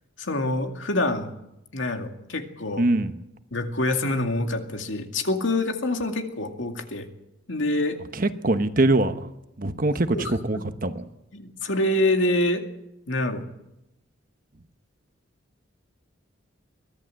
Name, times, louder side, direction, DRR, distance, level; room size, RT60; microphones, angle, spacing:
voice 1, 0.2-1.3 1.7-2.8 3.5-7.1 7.5-8.0 10.1-10.6 11.3-12.7 13.1-13.5, left 1 dB, 80° left, 5 dB, 2.3 m, -26 dB
voice 2, 2.8-3.1 8.1-9.3 9.6-11.0, right 2 dB, 45° right, 9 dB, 1.1 m, -23 dB
23.0 x 15.0 x 7.7 m, 0.88 s
head